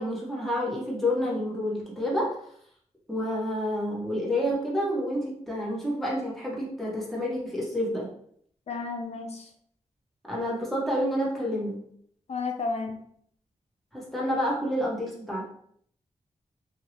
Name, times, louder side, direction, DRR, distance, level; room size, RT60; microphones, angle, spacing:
voice 1, 0.0-2.4 3.1-8.1 10.3-11.8 13.9-15.4, equal, ahead, -5 dB, 1.2 m, -29 dB
voice 2, 8.7-9.4 12.3-13.0, left 4 dB, 60° left, 3 dB, 0.6 m, -32 dB
2.9 x 2.8 x 3.0 m, 0.65 s
wide cardioid pair, 85°, 12 cm